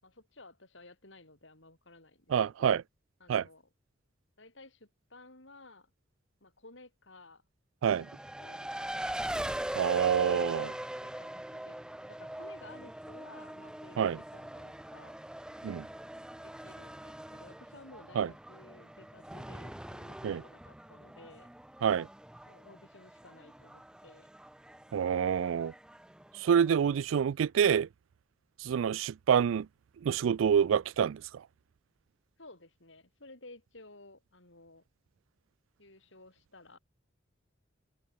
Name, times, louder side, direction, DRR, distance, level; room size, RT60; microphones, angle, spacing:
voice 1, 0.0-2.8 3.2-3.6 4.4-5.9 6.4-7.4 8.4-9.1 11.0-15.2 16.4-21.5 22.5-24.3 32.4-34.8 35.8-36.8, left 2 dB, 70° left, 7.3 m, -55 dB
voice 2, 2.3-2.8 3.3-3.5 7.8-8.1 9.8-10.7 14.0-14.2 15.6-15.9 18.2-18.3 20.2-20.4 21.8-22.1 24.9-25.7 26.4-27.9 28.6-29.7 30.0-31.4, right 8 dB, 85° right, 0.3 m, -27 dB
Race car auto racing, 7.9-27.0, right 1 dB, 5° right, 0.4 m, -42 dB
open air
head